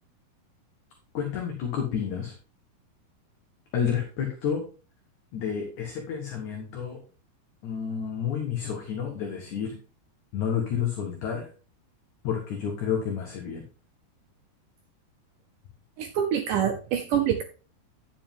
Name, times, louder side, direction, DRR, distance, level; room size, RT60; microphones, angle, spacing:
voice 1, 1.1-2.3 3.7-4.6 5.3-7.0 7.6-9.7 10.3-11.5 12.2-13.6, left 7 dB, 60° left, 2 dB, 2.4 m, -30 dB
voice 2, 16.0-17.4, right 9 dB, 75° right, 5 dB, 2.0 m, -26 dB
9.9 x 7.4 x 3.6 m, 0.36 s
omnidirectional pair, 4.6 m